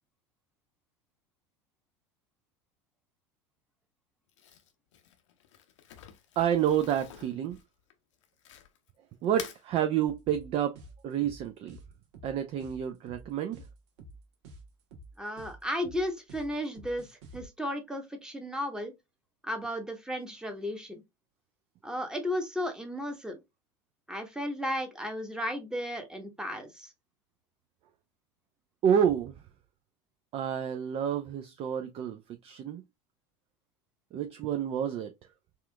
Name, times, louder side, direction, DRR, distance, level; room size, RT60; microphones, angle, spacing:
Crumpling crinkling, 4.3-8.9 9.2-9.6, left 9 dB, 70° left, 0.7 m, -48 dB
voice 1, 6.4-7.6 9.2-10.8 11.0-11.8 12.2-13.6 28.8-29.3 30.3-32.8 34.1-35.1, right 9 dB, 35° right, 0.4 m, -29 dB
sound 1, 10.1-17.4, right 2 dB, 60° right, 1.0 m, -49 dB
voice 2, 15.2-18.9 19.4-21.0 21.8-23.4 24.1-26.9, equal, 5° right, 1.0 m, -34 dB
4.2 x 2.4 x 2.2 m
figure-of-eight pair, 80°, 16 cm